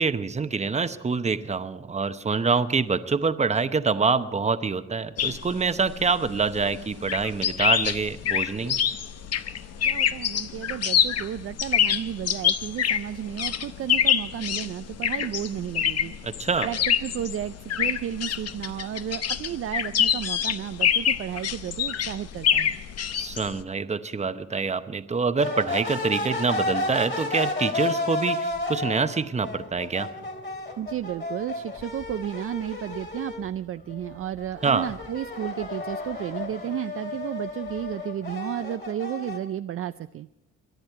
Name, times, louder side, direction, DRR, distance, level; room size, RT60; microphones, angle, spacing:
voice 1, 0.0-8.8 16.2-16.7 23.1-30.1 34.6-34.9, right 4 dB, 20° right, 10 dB, 0.9 m, -26 dB
sound 1, 5.2-23.6, left 8 dB, 55° left, 0.9 m, -26 dB
voice 2, 9.8-16.1 16.6-22.8 30.8-40.3, right 11 dB, 45° right, 11 dB, 0.4 m, -33 dB
sound 2, 25.4-33.5 33.9-39.4, left 2 dB, 35° left, 2.9 m, -32 dB
23.0 x 10.5 x 4.7 m, 0.89 s
cardioid pair, 90°, 30 cm